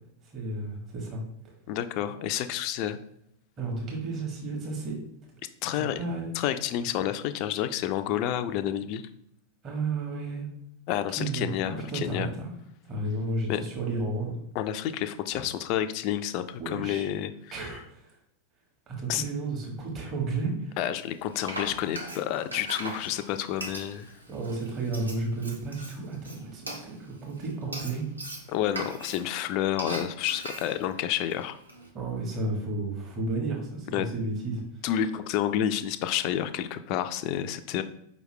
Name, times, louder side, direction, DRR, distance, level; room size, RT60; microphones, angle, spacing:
voice 1, 0.3-1.2 3.6-5.0 5.7-6.3 9.6-10.4 11.2-12.5 12.8-14.4 15.3-15.5 16.6-17.0 17.5-18.1 18.9-20.8 24.3-28.0 31.9-34.6, right 2 dB, 30° right, -2 dB, 1.3 m, -32 dB
voice 2, 1.7-3.0 5.6-6.0 6.3-9.0 10.9-12.3 13.5-13.6 14.5-17.8 19.1-19.2 20.8-24.1 28.5-31.6 33.9-34.1 34.8-37.8, left 11 dB, 45° left, 11 dB, 0.3 m, -29 dB
Frying (food), 21.0-31.9, right 1 dB, 80° right, 0.8 m, -41 dB
4.9 x 3.1 x 3.2 m, 0.77 s
figure-of-eight pair, 90°, 0 cm